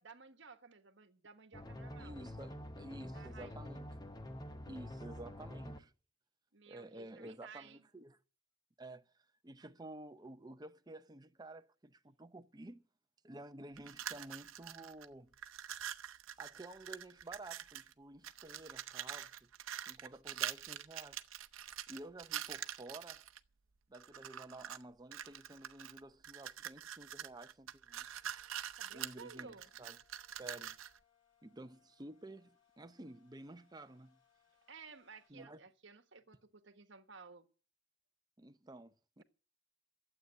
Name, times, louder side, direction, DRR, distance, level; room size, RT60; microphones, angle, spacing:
voice 1, 0.0-2.2 3.1-3.6 6.5-7.8 28.8-29.7 34.7-37.5, right 5 dB, 60° right, 1.4 m, -55 dB
sound 1, 1.5-5.8, left 1 dB, 20° left, 0.9 m, -47 dB
voice 2, 2.0-3.9 4.6-5.9 6.7-8.2 8.8-12.8 13.2-15.3 16.4-19.5 19.9-21.2 21.6-23.2 23.9-28.2 28.9-30.0 30.4-30.8 31.4-34.2 35.3-35.6 38.4-39.2, right 1 dB, 20° right, 0.7 m, -52 dB
sound 2, 13.8-15.1 15.3-17.9 18.2-23.4 23.9-24.8 25.1-31.0, right 10 dB, 90° right, 0.7 m, -45 dB
sound 3, 27.9-35.3, left 8 dB, 65° left, 6.4 m, -75 dB
12.0 x 8.1 x 9.9 m
head